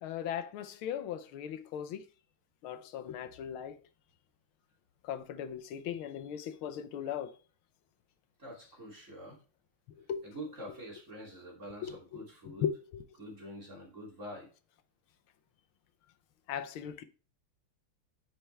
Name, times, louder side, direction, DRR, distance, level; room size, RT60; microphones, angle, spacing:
voice 1, 0.0-2.0 2.6-3.8 5.0-7.3 10.1-10.2 11.8-13.0 16.5-17.0, left 9 dB, 85° left, 1.6 m, -38 dB
voice 2, 8.4-9.4 10.2-12.6 13.2-14.5, equal, 35° right, 3.3 m, -46 dB
10.0 x 5.8 x 3.3 m
omnidirectional pair, 2.2 m